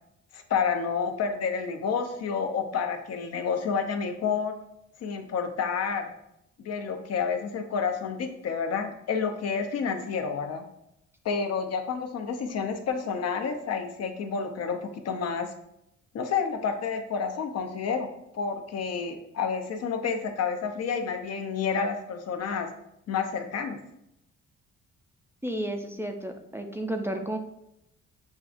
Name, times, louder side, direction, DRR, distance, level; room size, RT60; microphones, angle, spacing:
voice 1, 0.3-4.5 5.0-6.1 6.6-10.6 11.2-15.5 16.1-18.1 18.3-22.7 23.1-23.8, left 6 dB, 55° left, 6 dB, 0.6 m, -29 dB
voice 2, 25.4-27.4, right 1 dB, 10° right, 3 dB, 0.4 m, -32 dB
6.3 x 2.4 x 2.5 m, 0.80 s
cardioid pair, 90°, 30 cm